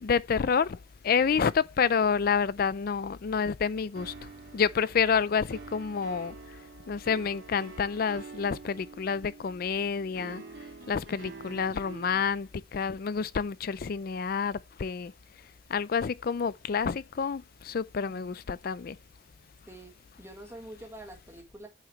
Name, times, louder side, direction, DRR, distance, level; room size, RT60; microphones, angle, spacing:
voice 1, 0.0-0.8 1.0-6.3 6.9-10.4 10.9-15.1 15.7-19.0, left 6 dB, 50° left, 0.4 m, -28 dB
sound 1, 3.9-12.2, right 4 dB, 65° right, 2.2 m, -47 dB
voice 2, 18.0-18.4 19.7-19.9 20.2-21.7, right 1 dB, 15° right, 1.6 m, -46 dB
8.8 x 6.1 x 3.1 m
head